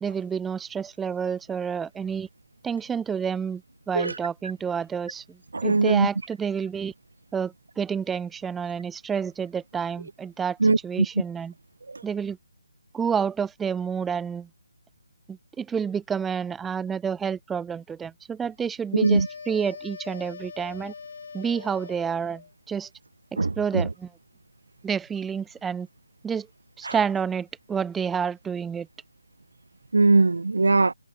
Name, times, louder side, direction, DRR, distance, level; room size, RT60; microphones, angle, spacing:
voice 1, 0.0-2.3 2.6-6.9 7.3-10.6 10.8-11.5 12.0-12.4 12.9-14.5 15.3-20.9 21.3-22.4 22.7-22.9 23.6-24.1 24.8-25.9 26.2-26.5 26.8-28.9, right 7 dB, 5° right, 0.4 m, -29 dB
voice 2, 5.5-6.1 10.6-11.1 11.9-12.0 18.9-19.3 23.4-23.9 26.8-26.9 29.9-30.9, right 3 dB, 80° right, 0.4 m, -21 dB
sound 1, 19.0-22.5, left 5 dB, 55° left, 2.1 m, -42 dB
hypercardioid pair, 165°, 0 cm